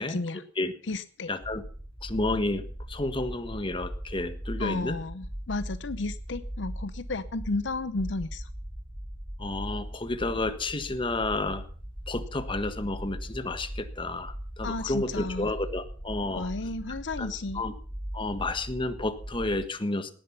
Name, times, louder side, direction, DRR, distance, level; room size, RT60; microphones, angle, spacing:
voice 1, 0.0-0.5 0.8-1.3 4.6-8.5 14.6-15.5 16.3-17.7, left 3 dB, 70° left, 14 dB, 0.7 m, -33 dB
voice 2, 1.3-1.6 2.0-5.0 9.4-11.6 12.1-16.5 17.2-17.7 18.1-20.1, left 2 dB, 25° left, 10 dB, 1.4 m, -31 dB
sound 1, 1.4-19.6, equal, 5° right, 3.9 m, -39 dB
18.5 x 10.5 x 5.8 m, 0.43 s
head